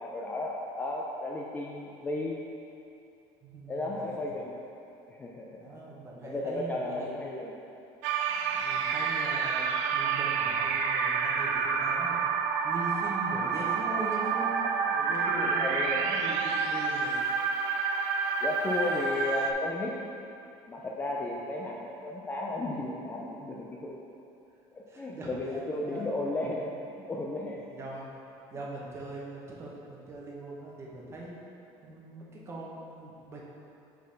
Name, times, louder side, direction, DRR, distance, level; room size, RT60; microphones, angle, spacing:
voice 1, 0.0-2.4 3.7-4.6 5.1-5.6 6.2-7.6 15.4-16.1 18.4-19.9 20.7-24.0 24.7-26.8 27.1-27.6, left 2 dB, 15° left, -2 dB, 0.4 m, -34 dB
voice 2, 3.4-4.1 5.6-7.2 8.4-9.7 9.9-12.2 12.6-17.2 24.9-25.4 25.8-26.1 27.6-28.1 28.5-31.4 31.8-33.4, right 2 dB, 25° right, -4 dB, 1.1 m, -41 dB
sound 1, 8.0-19.5, right 5 dB, 85° right, 0.4 m, -29 dB
5.4 x 3.9 x 5.2 m, 2.7 s
cardioid pair, 140°, 11 cm